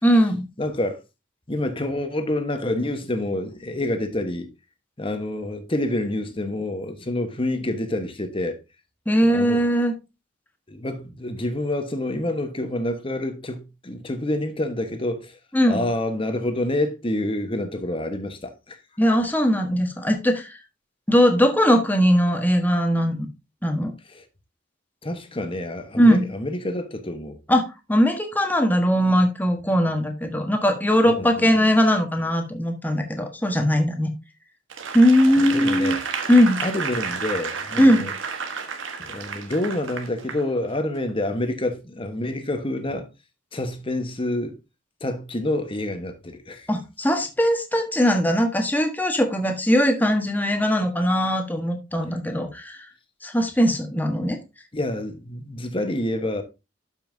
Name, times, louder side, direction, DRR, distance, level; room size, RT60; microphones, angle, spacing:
voice 1, 0.0-0.4 9.1-9.9 15.5-15.8 19.0-20.6 21.1-23.3 23.6-23.9 26.0-26.2 27.5-34.1 34.9-36.0 36.3-36.6 37.8-38.1 46.7-52.9 53.2-54.4, equal, 10° left, 1.3 m, -20 dB
voice 2, 0.6-1.0 1.5-4.5 5.0-8.6 9.2-9.6 10.7-15.4 15.7-18.8 25.0-27.4 31.0-31.5 35.4-36.0 36.6-38.1 39.0-43.1 43.5-44.5 45.0-46.7 54.7-56.4, left 1 dB, 30° left, 1.2 m, -27 dB
Applause / Crowd, 34.7-40.4 41.0-41.1, right 5 dB, 80° right, 1.3 m, -31 dB
12.0 x 5.7 x 2.7 m
head